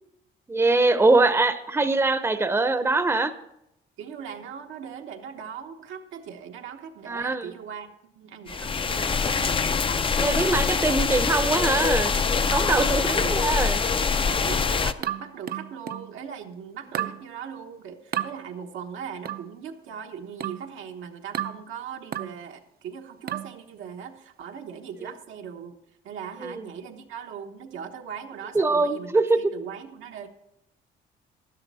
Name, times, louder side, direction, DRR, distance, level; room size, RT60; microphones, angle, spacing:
voice 1, 0.5-3.3 7.1-7.5 10.2-12.2 12.5-13.8 26.4-26.5 28.5-29.5, right 3 dB, 10° right, 11 dB, 0.7 m, -22 dB
voice 2, 4.0-9.5 12.7-13.4 14.1-25.8 26.0-30.3, right 7 dB, 80° right, 3 dB, 1.1 m, -39 dB
sound 1, 8.5-14.9, left 5 dB, 25° left, 0.5 m, -24 dB
sound 2, 15.0-16.1 16.9-17.2 18.1-18.3 19.3-19.5 20.4-20.7 21.3-21.6 22.1-22.4 23.3-23.6, right 11 dB, 50° right, 0.6 m, -31 dB
12.0 x 10.5 x 4.1 m, 0.83 s
cardioid pair, 90°, 20 cm